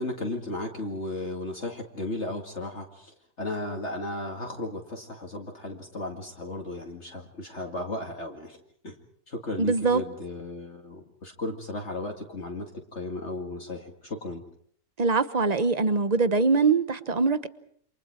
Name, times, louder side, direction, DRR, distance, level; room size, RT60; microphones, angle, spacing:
voice 1, 0.0-8.6 8.8-9.0 9.3-14.4, left 2 dB, 45° left, 1 dB, 2.4 m, -35 dB
voice 2, 9.6-10.0 15.0-17.5, right 4 dB, 30° right, 12 dB, 1.0 m, -23 dB
28.5 x 27.0 x 4.7 m, 0.63 s
omnidirectional pair, 1.6 m